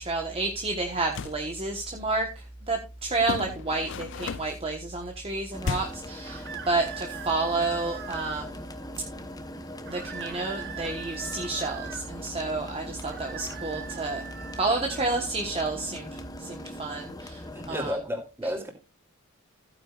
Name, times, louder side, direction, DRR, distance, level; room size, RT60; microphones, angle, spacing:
voice 1, 0.0-8.7 9.8-14.3 14.6-18.0 18.4-18.5, right 3 dB, 25° right, 2 dB, 1.2 m, -30 dB
sound 1, 0.9-1.4 3.2-4.7 5.6-6.1, left 5 dB, 55° left, 0.5 m, -34 dB
sound 2, 5.5-17.9, left 1 dB, 15° left, 1.0 m, -41 dB
sound 3, 6.2-8.5 9.9-12.1 13.0-15.1, right 8 dB, 50° right, 1.1 m, -41 dB
voice 2, 17.5-18.7, equal, 10° right, 2 dB, 2.8 m, -32 dB
15.0 x 9.5 x 2.4 m, 0.27 s
head